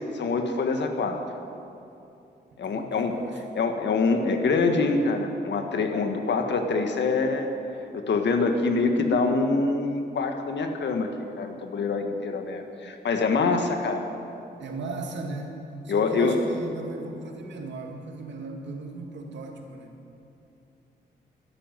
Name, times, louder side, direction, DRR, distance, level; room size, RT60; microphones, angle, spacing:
voice 1, 0.1-1.2 2.6-3.1 3.5-7.5 7.9-11.1 11.4-14.0 15.9-16.4, left 4 dB, 75° left, 5 dB, 1.6 m, -25 dB
voice 2, 2.7-3.4 14.6-20.0, right 3 dB, 85° right, 3 dB, 2.0 m, -37 dB
13.0 x 11.0 x 9.1 m, 2.8 s
cardioid pair, 70°, 18 cm